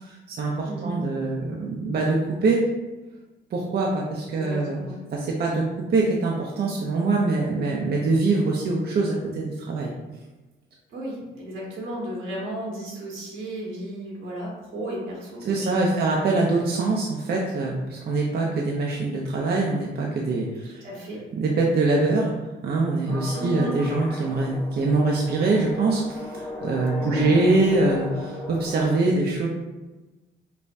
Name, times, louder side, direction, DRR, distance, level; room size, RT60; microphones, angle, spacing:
voice 1, 0.1-2.2 2.4-2.6 3.5-4.8 5.1-5.6 5.9-9.9 15.4-20.8 21.4-22.3 22.6-29.5, right 3 dB, 55° right, -2 dB, 0.6 m, -23 dB
voice 2, 0.6-1.0 4.3-4.9 10.9-16.0 20.6-21.2 23.3-23.7 27.0-27.3, right 1 dB, 80° right, -3 dB, 1.4 m, -34 dB
sound 1, 23.1-28.8, left 2 dB, 20° left, 1.1 m, -37 dB
5.3 x 2.2 x 2.6 m, 1.1 s
cardioid pair, 90°, 20 cm